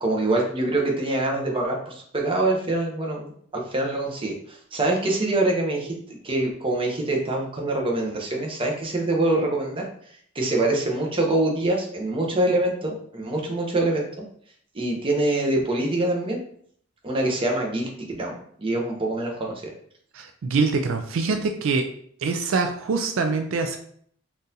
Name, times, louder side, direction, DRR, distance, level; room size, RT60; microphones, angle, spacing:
voice 1, 0.0-4.3 4.7-5.9 6.2-9.9 10.3-14.0 14.7-16.4 17.0-19.7, right 2 dB, 25° right, -1 dB, 0.7 m, -24 dB
voice 2, 20.1-21.9 22.2-23.8, right 4 dB, 80° right, 5 dB, 0.4 m, -24 dB
3.8 x 2.5 x 2.7 m, 0.62 s
head